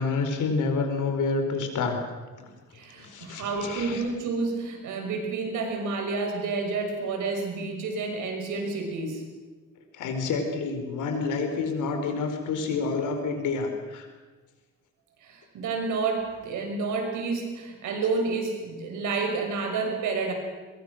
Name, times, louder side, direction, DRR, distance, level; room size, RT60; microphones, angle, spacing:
voice 1, 0.0-2.0 2.4-2.5 3.0-4.0 9.9-14.1, left 4 dB, 80° left, 5 dB, 4.5 m, -28 dB
voice 2, 2.7-9.2 15.2-20.3, right 4 dB, 80° right, 3 dB, 6.0 m, -29 dB
23.5 x 21.5 x 6.5 m, 1.3 s
cardioid pair, 90°, 30 cm